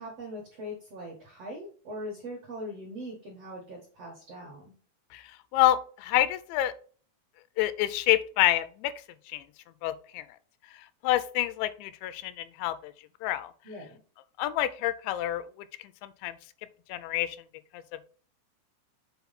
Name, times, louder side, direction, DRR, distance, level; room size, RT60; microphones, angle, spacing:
voice 1, 0.0-4.7 13.6-14.0, equal, 70° right, -1 dB, 1.5 m, -41 dB
voice 2, 5.5-6.7 7.6-8.9 9.3-9.4 9.8-10.2 11.0-12.9 13.2-13.5 14.4-15.5 16.0-16.3 16.9-17.4 17.7-17.8, left 14 dB, 90° left, 14 dB, 2.9 m, -27 dB
7.0 x 4.2 x 4.0 m, 0.42 s
omnidirectional pair, 5.1 m